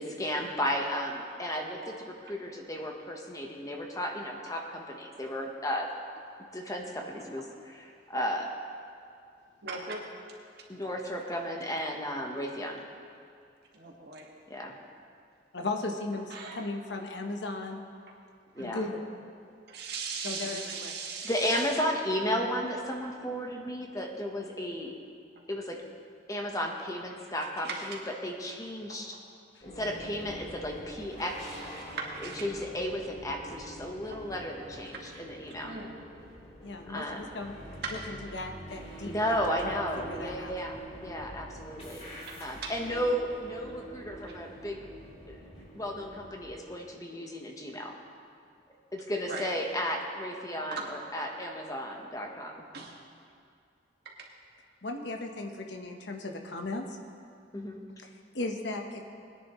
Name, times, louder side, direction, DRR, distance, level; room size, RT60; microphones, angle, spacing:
voice 1, 0.0-5.9 6.5-8.5 10.7-12.8 14.5-14.8 18.5-18.8 21.2-24.9 25.5-25.8 26.3-29.2 29.6-31.5 32.4-35.7 36.9-37.3 39.1-42.1 42.4-44.8 45.3-45.4 45.7-47.9 48.9-52.7 57.5-57.8, equal, 20° left, 2 dB, 1.2 m, -34 dB
voice 2, 9.6-10.0 13.7-14.3 16.3-16.6 18.6-18.9 19.7-21.7 27.2-27.3 27.6-28.0 31.8-32.4 34.8-35.2 35.6-36.0 37.8-38.1 42.3-42.4 42.6-43.0 49.3-49.5 50.7-51.0 52.7-53.0 54.1-54.3, right 4 dB, 65° right, -2 dB, 1.9 m, -39 dB
voice 3, 15.5-17.8 18.6-19.0 20.2-20.9 29.5-29.6 36.6-37.5 38.1-39.4 39.6-40.5 54.8-57.0 58.0-59.0, left 2 dB, 75° left, 3 dB, 1.2 m, -37 dB
sound 1, 29.6-46.5, right 1 dB, 35° left, 3.8 m, -46 dB
21.0 x 10.5 x 3.2 m, 2.4 s
head